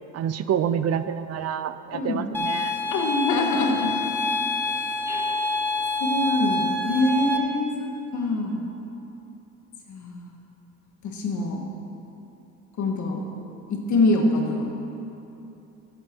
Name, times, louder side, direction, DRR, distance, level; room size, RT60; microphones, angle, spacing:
voice 1, 0.1-2.7, right 8 dB, 55° right, 12 dB, 0.5 m, -27 dB
voice 2, 1.9-2.3 2.9-3.9 5.1-5.2 6.0-8.6 9.9-10.2 11.1-11.6 12.8-13.2 13.7-14.7, left 2 dB, 75° left, 2 dB, 1.6 m, -24 dB
sound 1, 2.3-7.4, left 2 dB, 5° left, 1.1 m, -27 dB
14.0 x 8.0 x 4.6 m, 2.9 s
cardioid pair, 90°, 30 cm